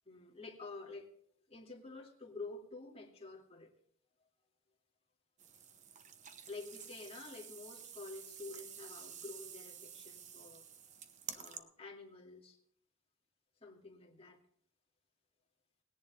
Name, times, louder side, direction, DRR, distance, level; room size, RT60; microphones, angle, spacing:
voice 1, 0.1-1.1 1.5-3.7 6.5-10.7 11.3-12.6 13.6-14.4, left 3 dB, 30° left, 0 dB, 2.4 m, -49 dB
sound 1, 5.4-11.6, right 8 dB, 35° right, 0.9 m, -50 dB
19.5 x 10.5 x 3.4 m, 0.68 s
head